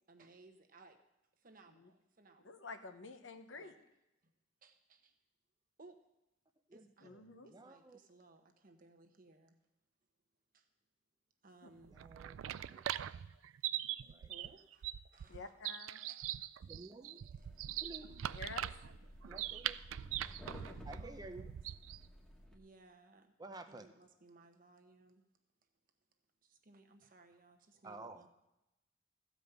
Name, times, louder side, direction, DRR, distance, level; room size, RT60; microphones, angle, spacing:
voice 1, 0.1-1.0 1.4-2.6 3.5-3.8 4.2-4.3 4.6-5.1 5.8-6.0 6.7-7.1 7.4-9.6 10.5-10.7 11.4-12.2 13.3-13.4 14.0-15.5 16.0-17.7 18.5-18.7 20.2-21.6 22.5-23.3 23.7-25.2 26.4-28.3, right 3 dB, 45° right, 5 dB, 1.1 m, -63 dB
voice 2, 2.4-3.7 7.0-7.5 15.3-16.0 18.2-18.7, left 3 dB, 75° left, 7 dB, 1.0 m, -49 dB
voice 3, 6.7-8.0 11.9-12.9 14.1-14.3 16.7-17.2 17.8-18.3 19.2-19.8 20.8-21.5 23.4-23.9 27.8-28.2, right 2 dB, 20° right, 7 dB, 0.6 m, -52 dB
sound 1, 11.8-22.1, right 12 dB, 85° right, 0.3 m, -42 dB
sound 2, 17.4-22.6, equal, 5° left, 1.4 m, -54 dB
14.5 x 5.2 x 7.9 m, 0.93 s
head